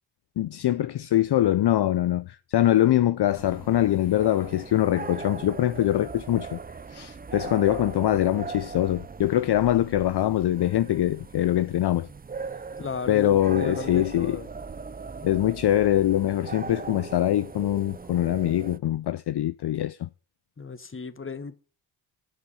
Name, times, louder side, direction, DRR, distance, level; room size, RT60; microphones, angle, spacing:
voice 1, 0.4-6.6 6.9-12.1 13.1-14.4 15.2-20.1, left 13 dB, 55° left, 0.5 m, -23 dB
sound 1, 3.3-18.8, right 5 dB, 20° right, 0.5 m, -39 dB
voice 2, 12.8-14.5 20.6-21.6, left 4 dB, 25° left, 1.1 m, -35 dB
7.9 x 6.2 x 7.0 m
cardioid pair, 50°, 48 cm